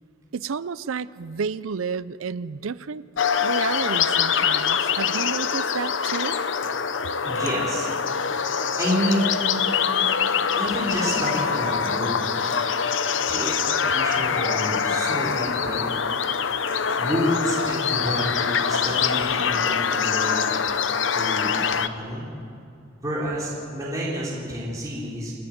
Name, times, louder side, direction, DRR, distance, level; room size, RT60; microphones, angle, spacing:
voice 1, 0.3-3.0 3.4-6.4, right 5 dB, 90° right, 17 dB, 0.5 m, -31 dB
sound 1, 3.2-21.9, left 6 dB, 65° left, 0.7 m, -24 dB
voice 2, 7.2-7.9 8.8-9.3 10.6-12.1 13.2-15.9 17.0-20.6 21.1-22.3 23.0-25.3, equal, 15° right, -7 dB, 4.3 m, -29 dB
30.0 x 10.5 x 9.4 m, 2.6 s
head